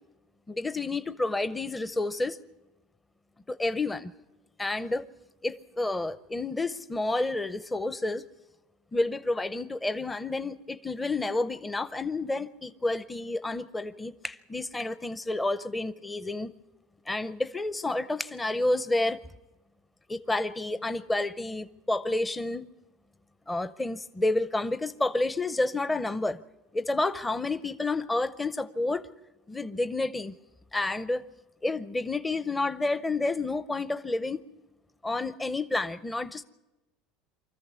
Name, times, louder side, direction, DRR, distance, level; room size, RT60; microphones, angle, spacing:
voice 1, 0.5-2.4 3.5-4.1 4.6-5.1 5.4-8.2 8.9-16.5 17.1-19.2 20.1-22.7 23.5-26.4 26.7-29.1 29.5-30.4 30.7-31.2 31.6-34.4 35.0-36.4, left 2 dB, 10° left, 0.6 m, -30 dB
24.5 x 14.0 x 8.2 m
supercardioid pair, 135°, 0 cm